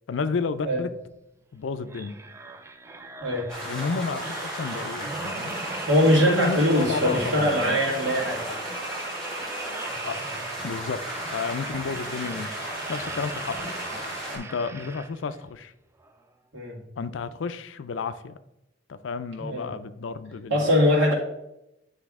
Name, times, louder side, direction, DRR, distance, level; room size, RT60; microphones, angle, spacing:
voice 1, 0.1-0.9 1.5-2.1 3.6-5.5 6.0-7.8 8.0-8.1 10.1-10.2 10.6-11.0 11.3-12.5 12.9-13.7 14.3-15.7 17.0-18.4 18.9-20.9, left 5 dB, 85° left, 12 dB, 0.4 m, -31 dB
sound 1, 1.9-15.4 16.0-16.2, right 3 dB, 15° right, 0.3 m, -38 dB
sound 2, 3.5-14.4, right 1 dB, 5° left, 1.8 m, -35 dB
voice 2, 5.9-8.4 16.5-16.8 19.4-19.7 20.5-21.1, equal, 85° right, -3 dB, 2.0 m, -22 dB
9.5 x 3.3 x 3.6 m, 0.88 s
head